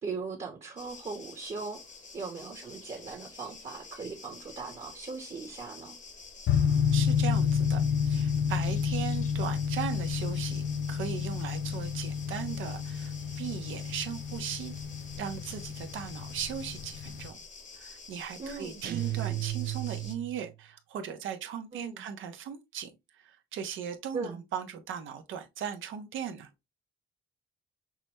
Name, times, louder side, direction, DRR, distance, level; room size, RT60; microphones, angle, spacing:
voice 1, 0.0-1.8 2.1-6.0 18.4-18.9 21.7-22.0 24.1-24.4, right 4 dB, 35° right, 1.1 m, -39 dB
sound 1, 0.8-20.1, left 4 dB, 40° left, 1.0 m, -49 dB
sound 2, 6.5-17.3, left 7 dB, 65° left, 0.5 m, -30 dB
voice 2, 6.9-14.7 15.2-17.4 17.7-26.5, right 8 dB, 80° right, 0.9 m, -38 dB
sound 3, 18.8-20.5, right 15 dB, 55° right, 0.5 m, -34 dB
5.9 x 2.2 x 2.9 m
cardioid pair, 90°, 20 cm